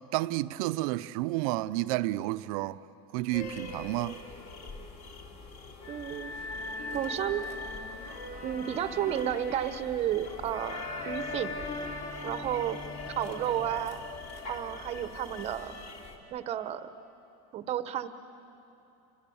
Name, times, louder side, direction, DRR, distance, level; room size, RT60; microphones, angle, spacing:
voice 1, 0.1-2.8 3.1-4.2, right 17 dB, 65° right, 0.7 m, -30 dB
sound 1, 3.3-16.2, left 2 dB, 40° left, 3.0 m, -40 dB
voice 2, 5.9-6.3 6.9-7.5 8.4-11.5 12.2-12.8 13.2-14.0 14.5-15.8 16.3-16.9 17.5-18.1, right 11 dB, 30° right, 0.9 m, -32 dB
30.0 x 25.0 x 7.1 m
supercardioid pair, 160°, 20 cm